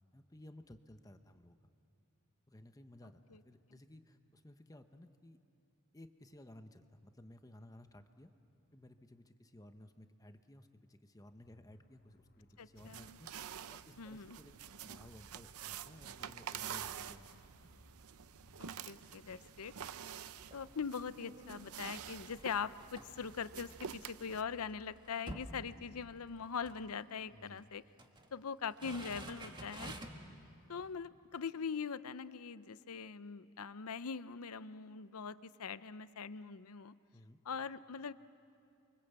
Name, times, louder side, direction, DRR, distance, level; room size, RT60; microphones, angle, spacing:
voice 1, 0.1-1.6 2.5-5.4 5.9-8.3 8.7-17.7 19.4-19.5 27.3-27.7 37.1-37.4, left 1 dB, 15° left, 8 dB, 0.9 m, -57 dB
sound 1, 11.4-25.5, equal, 45° left, 1.6 m, -66 dB
voice 2, 12.6-13.2 14.0-14.4 18.6-19.7 20.5-27.8 28.3-29.9 30.7-36.9 37.5-38.1, left 6 dB, 75° left, 15 dB, 0.7 m, -42 dB
sound 2, 12.8-24.4, right 8 dB, 75° right, 0.6 m, -48 dB
sound 3, 20.2-20.7 21.2-24.2 24.6-24.7 25.0-26.3 26.6-26.8 27.6-28.3 28.7-30.3 30.8-30.9, right 1 dB, 20° right, 1.6 m, -50 dB
29.5 x 24.0 x 8.1 m, 2.5 s
head